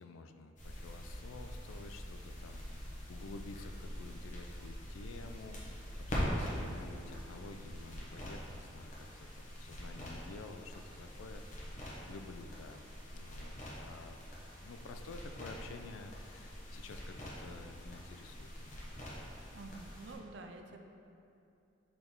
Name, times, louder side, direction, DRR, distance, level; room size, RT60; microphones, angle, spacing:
voice 1, 0.0-5.8 6.1-11.8 12.1-12.8 13.1-14.2 14.6-18.9, left 3 dB, 85° left, 7 dB, 0.4 m, -51 dB
sound 1, 0.6-20.1, equal, 40° left, 1.2 m, -44 dB
voice 2, 19.5-20.8, right 2 dB, 60° right, 4 dB, 0.5 m, -49 dB
5.3 x 4.1 x 4.5 m, 2.7 s
head